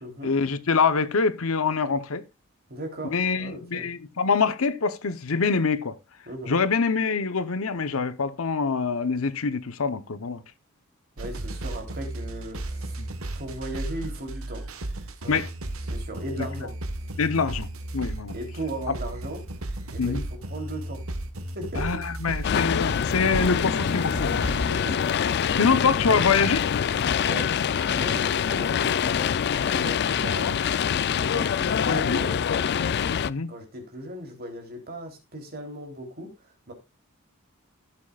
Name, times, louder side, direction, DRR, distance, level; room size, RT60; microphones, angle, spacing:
voice 1, 0.2-2.2 3.1-5.9 6.5-10.4 13.0-13.1 15.3-15.5 17.2-17.7 17.9-18.3 20.0-20.2 21.8-24.7 25.6-26.6 30.4-30.5 31.9-32.2 33.3-33.5, left 5 dB, 70° left, 0.8 m, -25 dB
voice 2, 2.7-3.9 6.3-6.6 11.2-13.0 13.3-14.6 15.2-15.4 15.9-16.7 17.0-17.1 18.3-19.4 19.9-21.0 21.5-21.9 24.7-25.3 25.5-25.9 27.3-27.5 27.9-29.3 29.7-30.5 31.1-32.6 33.5-36.7, right 1 dB, 45° right, 3.2 m, -37 dB
sound 1, 11.2-24.7, right 1 dB, 70° right, 1.3 m, -34 dB
sound 2, 22.4-33.3, left 7 dB, 50° left, 0.4 m, -25 dB
16.0 x 7.5 x 2.4 m
head